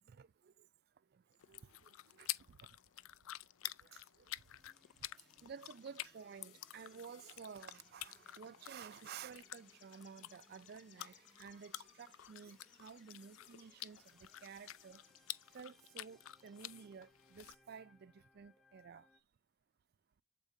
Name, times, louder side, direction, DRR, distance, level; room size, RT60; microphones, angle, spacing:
voice 1, 0.1-0.7 1.0-2.8 3.6-4.4 5.0-15.0 15.5-19.2, right 6 dB, 50° right, 0.3 m, -54 dB
sound 1, 1.3-15.6, left 8 dB, 60° left, 1.2 m, -69 dB
sound 2, 1.4-17.5, left 15 dB, 90° left, 0.4 m, -50 dB
sound 3, 4.2-19.2, left 1 dB, ahead, 0.7 m, -71 dB
8.0 x 5.0 x 2.6 m
head